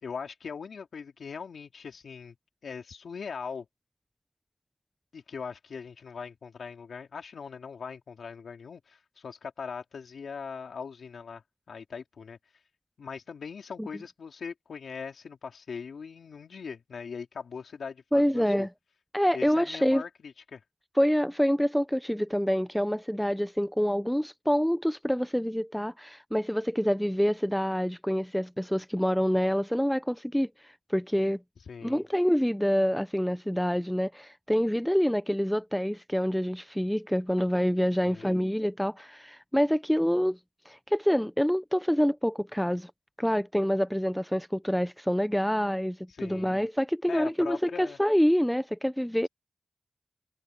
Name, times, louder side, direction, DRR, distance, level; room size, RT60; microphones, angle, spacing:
voice 1, 0.0-2.4 2.6-3.7 5.1-12.4 13.0-18.7 19.3-20.6 31.7-32.0 38.1-38.3 46.1-46.6 47.1-48.0, left 6 dB, 85° left, 2.9 m, -40 dB
voice 2, 18.1-18.7 19.1-20.0 21.0-31.4 31.8-40.4 40.7-42.9 43.2-49.3, equal, 5° left, 0.6 m, -26 dB
cardioid pair, 55°, 0 cm